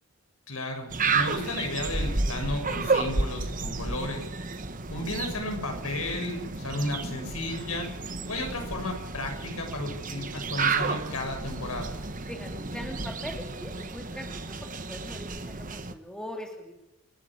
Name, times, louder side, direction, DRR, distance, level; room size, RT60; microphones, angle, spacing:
voice 1, 0.5-4.2 4.9-7.9 8.3-11.9, left 2 dB, 75° left, 3 dB, 6.8 m, -33 dB
sound 1, 0.9-15.9, right 4 dB, 35° right, 1.4 m, -32 dB
voice 2, 12.3-14.3 14.6-16.7, equal, 5° left, 2 dB, 3.0 m, -41 dB
28.5 x 12.5 x 8.7 m, 0.90 s
head